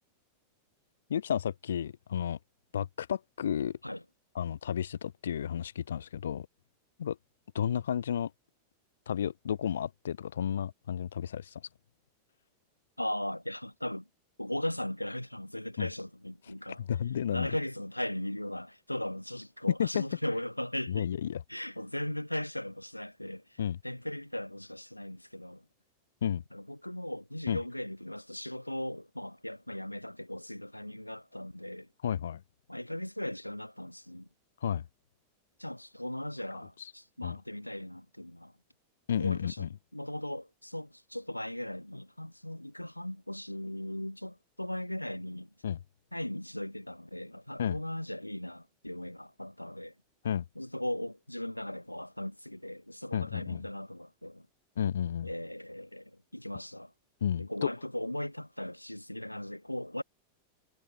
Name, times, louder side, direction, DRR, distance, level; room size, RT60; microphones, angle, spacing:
voice 1, 1.1-2.4 2.7-3.8 4.4-6.5 7.0-7.2 7.5-8.3 9.1-11.6 15.8-15.9 16.8-17.5 19.8-20.0 20.9-21.4 23.6-23.8 26.2-26.4 27.5-27.6 32.0-32.4 34.6-34.8 36.8-36.9 37.2-37.4 39.1-39.7 45.6-45.8 47.6-47.8 50.2-50.4 53.1-53.7 54.8-55.3 57.2-57.7, left 9 dB, 65° left, 0.3 m, -32 dB
voice 2, 13.0-14.1 14.4-16.8 17.3-21.1 21.5-25.6 26.5-31.9 32.7-34.3 35.6-38.5 39.2-39.7 39.9-45.5 46.1-49.9 50.5-54.5 55.2-56.9 57.4-60.0, left 1 dB, 90° left, 1.6 m, -38 dB
figure-of-eight pair, 90°, 0 cm